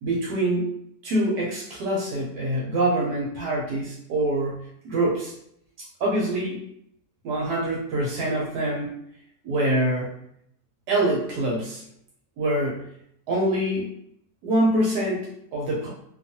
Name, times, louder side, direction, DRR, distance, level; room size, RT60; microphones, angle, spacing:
voice 1, 0.0-0.7 1.0-5.3 5.8-6.6 7.2-9.0 9.4-10.1 10.9-11.8 12.4-12.8 13.3-13.9 14.4-15.9, right 1 dB, 75° right, -3 dB, 1.2 m, -25 dB
2.8 x 2.3 x 2.7 m, 0.72 s
omnidirectional pair, 1.9 m